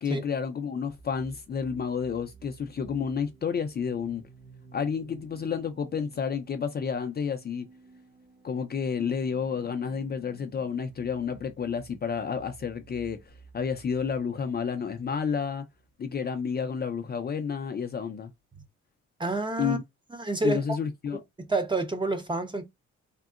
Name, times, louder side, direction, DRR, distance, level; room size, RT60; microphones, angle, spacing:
voice 1, 0.0-4.2 4.7-7.7 8.4-15.6 16.0-18.3 19.6-19.8 20.4-21.2, left 6 dB, 35° left, 0.5 m, -30 dB
sound 1, 1.0-16.5, right 4 dB, 75° right, 1.3 m, -54 dB
voice 2, 19.2-19.8 20.1-20.6 21.5-22.6, right 2 dB, 15° right, 0.6 m, -28 dB
3.6 x 2.0 x 2.4 m
cardioid pair, 90°, 30 cm